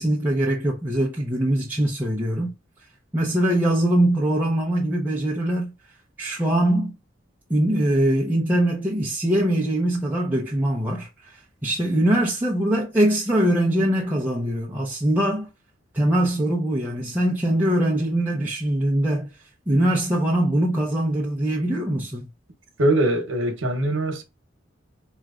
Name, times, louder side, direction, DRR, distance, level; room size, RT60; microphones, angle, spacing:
voice 1, 0.0-2.5 3.1-5.7 6.2-6.9 7.5-15.5 15.9-19.3 19.7-22.3, right 1 dB, 10° right, 0.6 m, -22 dB
voice 2, 22.8-24.2, right 1 dB, 80° right, 1.0 m, -22 dB
4.5 x 3.1 x 2.4 m
head